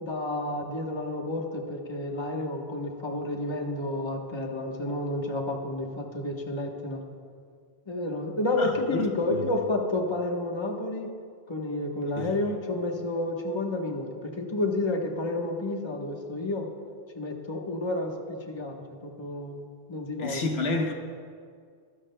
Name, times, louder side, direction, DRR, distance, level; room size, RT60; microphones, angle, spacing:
voice 1, 0.0-7.0 7.9-11.1 11.5-16.7 17.1-20.4, left 2 dB, 25° left, 2 dB, 1.1 m, -30 dB
voice 2, 8.6-9.5 12.2-12.3 20.2-20.9, left 2 dB, 75° left, 4 dB, 1.2 m, -30 dB
23.5 x 12.5 x 2.2 m, 2.1 s
omnidirectional pair, 1.1 m